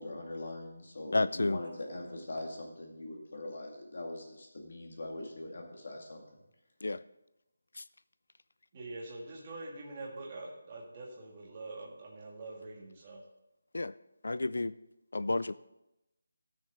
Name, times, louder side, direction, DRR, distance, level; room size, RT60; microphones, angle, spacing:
voice 1, 0.0-6.2, left 2 dB, 50° left, 1 dB, 2.3 m, -42 dB
voice 2, 1.1-1.6 6.8-7.0 7.8-7.9 13.7-13.9 14.2-14.7 15.1-15.5, left 2 dB, 75° left, 15 dB, 0.3 m, -30 dB
voice 3, 8.7-13.2, right 2 dB, 20° right, -2 dB, 1.6 m, -44 dB
13.5 x 6.5 x 4.0 m, 0.91 s
figure-of-eight pair, 180°, 0 cm